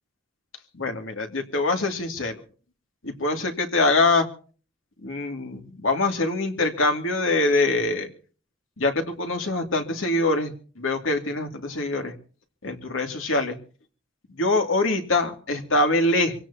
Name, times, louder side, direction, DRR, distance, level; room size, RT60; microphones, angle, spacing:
voice 1, 0.7-2.4 3.0-4.3 5.0-8.1 8.8-12.1 12.6-13.6 14.4-16.3, left 2 dB, 85° left, 4 dB, 2.5 m, -24 dB
26.0 x 17.0 x 2.9 m, 0.40 s
head